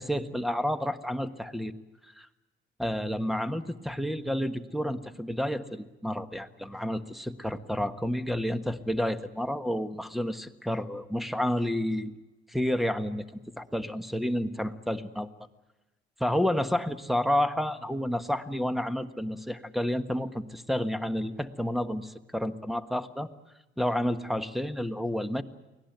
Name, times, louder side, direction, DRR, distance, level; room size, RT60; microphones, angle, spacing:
voice 1, 0.0-1.7 2.2-2.3 2.8-12.1 12.5-13.2 13.6-15.3 16.2-23.3 23.8-25.4, equal, ahead, 12 dB, 1.4 m, -30 dB
24.5 x 17.5 x 9.2 m, 1.1 s
cardioid pair, 90°, 20 cm